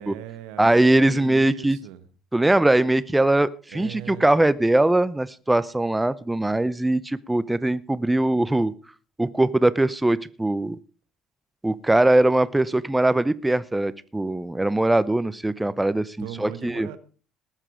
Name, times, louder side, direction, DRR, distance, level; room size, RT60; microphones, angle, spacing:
voice 1, 0.0-2.0 3.7-4.4 16.2-17.0, right 13 dB, 70° right, 12 dB, 1.3 m, -39 dB
voice 2, 0.6-1.8 2.3-8.7 9.2-10.8 11.6-16.9, right 1 dB, 10° right, 17 dB, 0.7 m, -21 dB
19.5 x 7.5 x 5.0 m, 0.37 s
hypercardioid pair, 60°, 0 cm